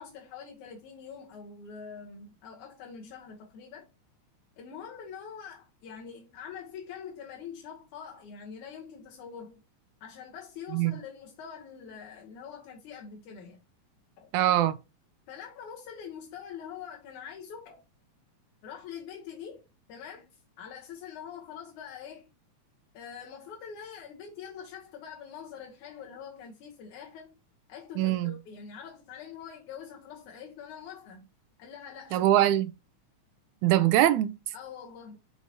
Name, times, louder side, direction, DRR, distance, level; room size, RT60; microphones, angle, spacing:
voice 1, 0.0-3.9 4.6-9.6 10.0-13.6 14.2-14.3 15.3-17.8 18.6-19.6 19.9-22.3 22.9-27.4 27.7-31.3 31.6-32.3 34.5-35.2, left 7 dB, 85° left, 2.6 m, -44 dB
voice 2, 14.3-14.8 28.0-28.3 32.1-32.7 33.6-34.3, right 13 dB, 85° right, 2.0 m, -23 dB
6.1 x 5.6 x 2.8 m
omnidirectional pair, 3.4 m